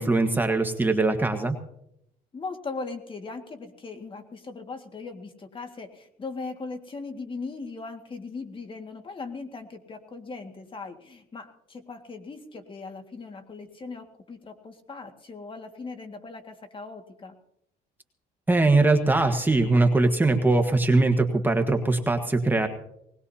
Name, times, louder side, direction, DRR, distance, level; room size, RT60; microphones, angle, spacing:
voice 1, 0.0-1.6 18.5-22.7, right 2 dB, 10° right, 5 dB, 1.4 m, -21 dB
voice 2, 2.3-17.3, left 4 dB, 30° left, 6 dB, 1.9 m, -39 dB
20.0 x 20.0 x 2.8 m, 0.79 s
cardioid pair, 110°, 17 cm